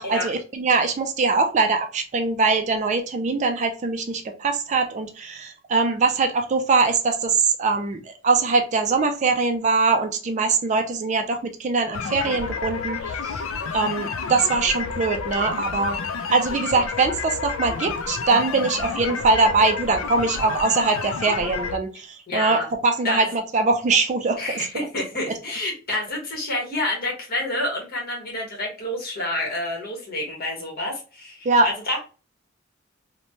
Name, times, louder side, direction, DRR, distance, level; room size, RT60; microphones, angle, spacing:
voice 1, 0.0-13.4 13.7-16.0 16.3-24.7 31.5-31.7, right 4 dB, 35° right, 6 dB, 0.4 m, -22 dB
sound 1, 11.9-21.8, left 5 dB, 80° left, 0.4 m, -30 dB
voice 2, 22.3-22.7 23.0-23.3 24.4-32.0, left 1 dB, 50° left, -1 dB, 1.2 m, -28 dB
3.0 x 2.1 x 2.6 m, 0.35 s
head